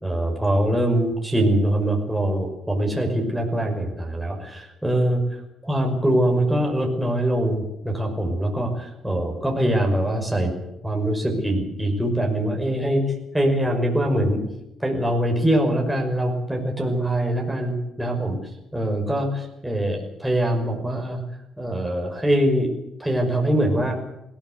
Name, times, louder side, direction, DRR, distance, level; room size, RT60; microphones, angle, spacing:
voice 1, 0.0-5.2 5.6-10.5 10.8-14.4 14.8-18.4 18.7-21.2 21.6-22.7 23.0-24.0, right 1 dB, 5° right, 0 dB, 5.8 m, -23 dB
21.5 x 16.0 x 8.2 m, 0.87 s
cardioid pair, 90°, 0 cm